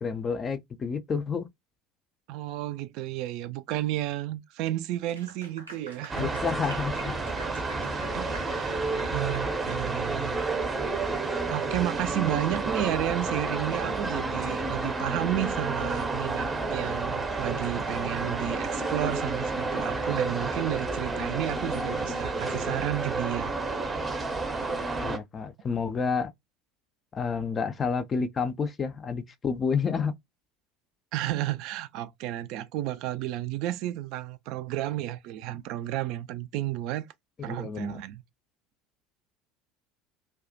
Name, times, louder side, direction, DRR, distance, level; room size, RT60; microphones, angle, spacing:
voice 1, 0.0-1.5 6.2-7.4 25.0-26.3 27.1-30.1 37.4-38.0, left 5 dB, 30° left, 0.4 m, -30 dB
voice 2, 2.3-6.4 8.1-10.4 11.5-23.5 31.1-37.1 37.4-38.2, right 13 dB, 55° right, 0.3 m, -32 dB
Clapping / Applause, 5.0-9.8, right 2 dB, 80° right, 0.7 m, -46 dB
sound 1, 6.1-25.2, right 3 dB, 15° right, 0.6 m, -30 dB
2.3 x 2.1 x 2.5 m
figure-of-eight pair, 70°, 0 cm